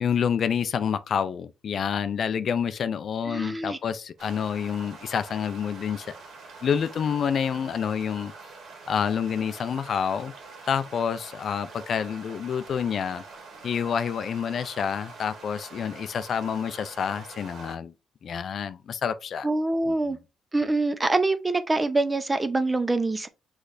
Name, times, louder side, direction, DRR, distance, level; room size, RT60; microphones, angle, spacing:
voice 1, 0.0-6.1 6.6-8.3 8.9-10.3 10.7-13.2 13.6-17.9 18.2-19.5, left 7 dB, 55° left, 0.4 m, -28 dB
voice 2, 3.3-3.8 19.4-20.2 20.5-23.3, right 2 dB, 20° right, 0.7 m, -25 dB
sound 1, 4.2-17.8, right 4 dB, 70° right, 1.8 m, -45 dB
6.2 x 3.3 x 2.6 m
cardioid pair, 90°, 0 cm